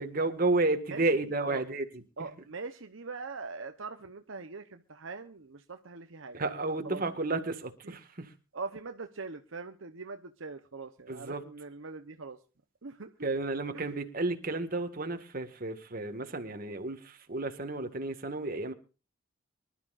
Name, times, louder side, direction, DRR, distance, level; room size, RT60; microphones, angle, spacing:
voice 1, 0.0-2.0 6.3-8.3 11.1-11.4 13.2-18.7, right 2 dB, 45° right, 7 dB, 1.8 m, -32 dB
voice 2, 1.3-1.6 2.2-6.4 6.7-7.0 7.3-7.4 7.8-7.9 8.5-12.4 12.8-13.1 13.7-13.9, right 4 dB, 70° right, 7 dB, 0.9 m, -42 dB
24.5 x 12.5 x 2.5 m, 0.34 s
head